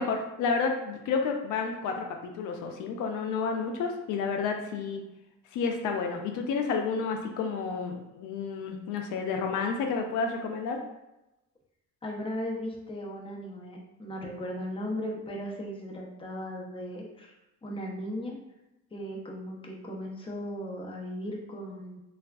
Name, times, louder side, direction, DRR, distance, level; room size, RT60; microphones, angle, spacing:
voice 1, 0.0-5.0 5.5-10.8, left 5 dB, 85° left, 4 dB, 0.5 m, -30 dB
voice 2, 12.0-17.3 17.6-18.4 18.9-22.0, equal, 20° left, -1 dB, 0.6 m, -37 dB
3.4 x 2.4 x 2.2 m, 0.94 s
cardioid pair, 90°, 30 cm